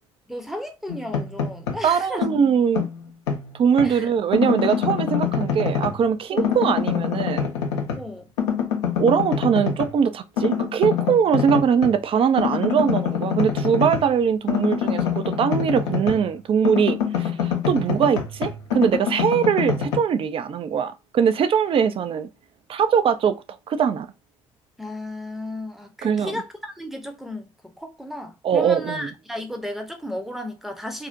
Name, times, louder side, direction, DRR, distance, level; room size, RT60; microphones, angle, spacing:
voice 1, 0.3-2.3 3.8-4.1 6.3-6.5 8.0-8.3 24.8-31.1, left 1 dB, ahead, 0.7 m, -34 dB
sound 1, 0.9-1.9 2.2-4.0 4.3-6.1 6.4-8.1 8.4-10.0 10.4-12.0 12.4-16.3 16.6-20.0, left 7 dB, 80° left, 0.5 m, -25 dB
voice 2, 1.8-2.9 3.6-7.5 9.0-22.3 22.7-23.4 23.7-24.1 26.0-26.4 28.4-29.0, right 7 dB, 40° right, 0.4 m, -21 dB
2.5 x 2.0 x 2.5 m
hypercardioid pair, 50°, 15 cm